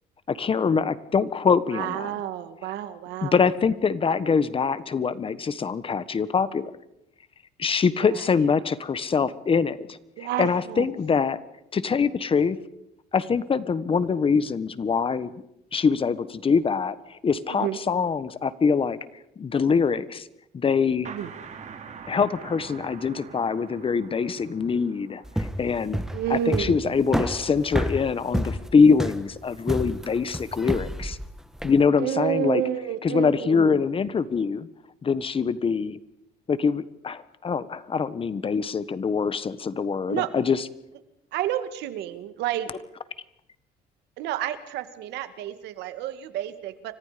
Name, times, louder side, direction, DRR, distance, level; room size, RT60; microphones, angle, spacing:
voice 1, 0.3-2.1 3.2-6.7 7.6-10.0 10.4-11.4 11.7-12.6 13.1-15.3 15.7-19.0 19.4-20.3 20.5-21.1 22.1-26.0 26.3-31.2 31.6-32.6 33.0-34.7 35.0-36.0 36.5-40.7, left 5 dB, 30° left, 15 dB, 1.4 m, -24 dB
voice 2, 1.7-3.4 8.1-8.2 10.2-10.9 17.5-17.8 21.1-21.3 26.1-27.0 32.0-33.8 40.1-40.3 41.3-42.7 44.2-46.9, right 12 dB, 85° right, 10 dB, 2.2 m, -30 dB
sound 1, 21.0-26.5, right 6 dB, 45° right, 3.5 m, -44 dB
sound 2, 25.2-31.8, equal, 5° right, 1.5 m, -29 dB
29.5 x 25.0 x 5.2 m, 0.83 s
cardioid pair, 110°, 17 cm